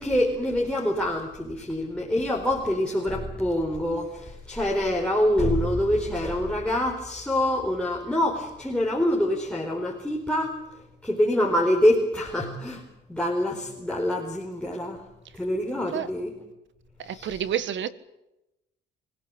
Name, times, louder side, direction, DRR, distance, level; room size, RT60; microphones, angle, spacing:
voice 1, 0.0-10.6 11.0-12.8 13.1-15.0 15.3-16.3 17.1-17.3, left 1 dB, 5° left, 4.5 m, -25 dB
voice 2, 17.0-17.9, right 9 dB, 70° right, 1.6 m, -29 dB
25.5 x 16.5 x 9.0 m
cardioid pair, 90°, 20 cm